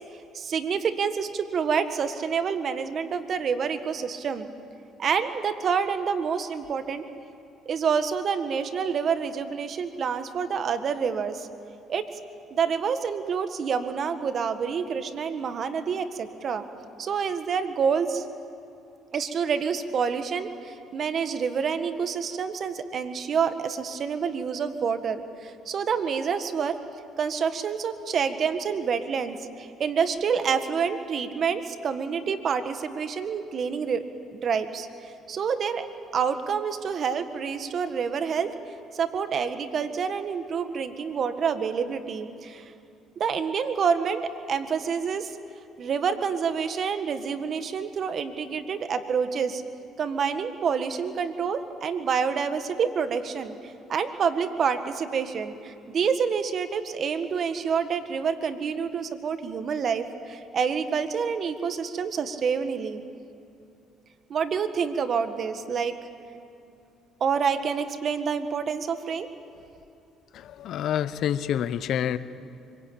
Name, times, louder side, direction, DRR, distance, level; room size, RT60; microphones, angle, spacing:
voice 1, 0.3-4.5 5.0-7.0 7.7-11.5 11.9-12.1 12.5-16.7 17.0-18.2 19.1-26.8 27.2-34.1 34.3-35.9 36.1-38.6 38.9-42.6 43.2-45.4 45.8-49.6 50.0-63.0 64.3-66.0 67.2-69.3, right 6 dB, 55° right, 9 dB, 1.8 m, -28 dB
voice 2, 70.3-72.2, left 10 dB, 65° left, 14 dB, 1.0 m, -27 dB
25.0 x 23.5 x 8.8 m, 2.6 s
supercardioid pair, 70°, 0 cm